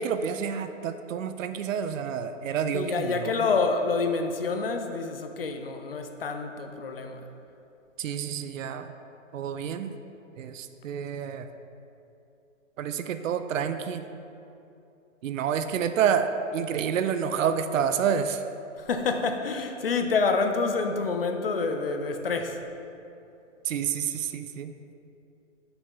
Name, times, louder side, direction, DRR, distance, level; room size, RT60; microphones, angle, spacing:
voice 1, 0.0-3.5 8.0-8.9 9.3-9.9 10.4-11.5 12.8-14.0 15.2-18.4 23.7-24.7, right 7 dB, 75° right, 9 dB, 0.5 m, -29 dB
voice 2, 2.7-7.2 18.8-22.6, left 4 dB, 45° left, 5 dB, 0.5 m, -27 dB
5.7 x 5.5 x 3.9 m, 2.8 s
hypercardioid pair, 180°, 40 cm